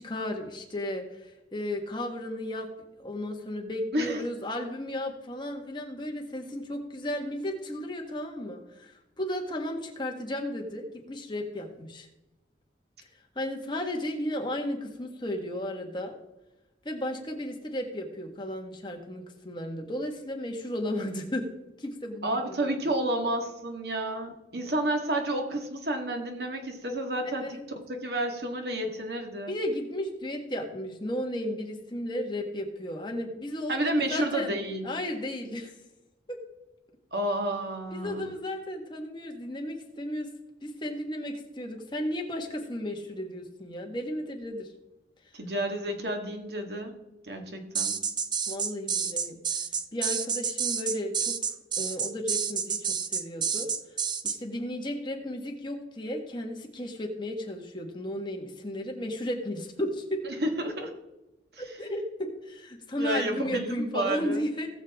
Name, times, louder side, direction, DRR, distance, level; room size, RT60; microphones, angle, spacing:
voice 1, 0.0-2.7 3.0-12.1 13.3-16.2 16.8-21.5 21.8-22.9 27.4-27.7 29.5-34.6 34.8-35.7 36.3-36.4 37.9-40.3 40.6-44.7 48.5-49.7 49.9-51.3 51.8-54.0 54.2-60.2 61.6-64.7, left 1 dB, 25° left, 2 dB, 1.8 m, -34 dB
voice 2, 22.2-27.6 27.9-29.5 33.7-34.9 37.1-38.3 45.3-46.9 47.3-48.0 60.4-60.9 63.0-64.4, right 1 dB, 65° right, 4 dB, 1.9 m, -30 dB
sound 1, 47.7-54.4, right 6 dB, 25° right, 0.6 m, -29 dB
18.5 x 6.9 x 3.7 m, 0.97 s
head